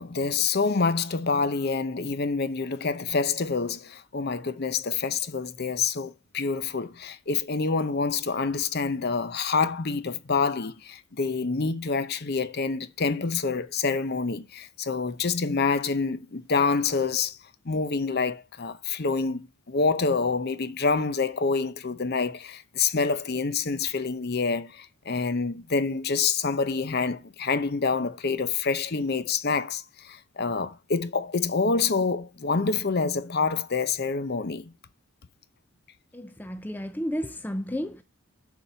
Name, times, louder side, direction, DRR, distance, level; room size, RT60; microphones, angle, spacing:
voice 1, 0.0-17.4 17.6-34.7, left 4 dB, 45° left, 0.7 m, -27 dB
voice 2, 36.1-38.0, equal, 10° left, 0.4 m, -32 dB
7.1 x 5.9 x 5.6 m
head